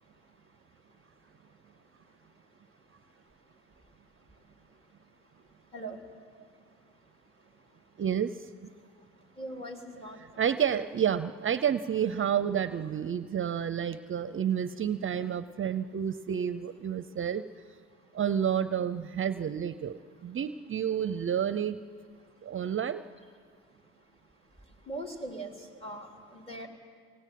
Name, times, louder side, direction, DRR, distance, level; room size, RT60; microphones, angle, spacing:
voice 1, 8.0-8.3 10.4-17.4 18.1-20.0 20.2-21.8 22.4-23.0, right 8 dB, 40° right, 13 dB, 0.6 m, -30 dB
voice 2, 9.4-10.2 24.9-25.5 25.8-26.7, right 1 dB, 20° left, 2 dB, 3.7 m, -40 dB
21.5 x 18.0 x 9.3 m, 2.2 s
cardioid pair, 90°, 30 cm